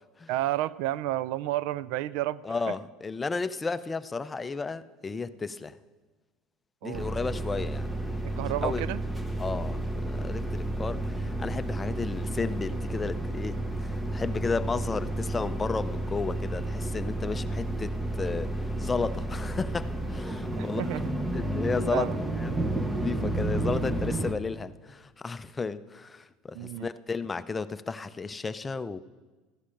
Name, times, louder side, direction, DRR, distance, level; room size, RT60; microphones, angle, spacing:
voice 1, 0.3-2.7 6.8-7.1 8.2-9.0 20.6-21.1 21.9-22.2 26.5-26.9, right 15 dB, 70° right, 19 dB, 0.3 m, -31 dB
voice 2, 2.4-5.8 6.8-7.9 8.3-8.8 9.4-18.5 18.8-20.8 21.3-22.1 22.4-29.0, left 4 dB, 20° left, 13 dB, 0.5 m, -33 dB
sound 1, 6.9-24.3, right 1 dB, 10° right, 1.1 m, -31 dB
14.5 x 9.7 x 5.1 m, 1.3 s
supercardioid pair, 100°, 0 cm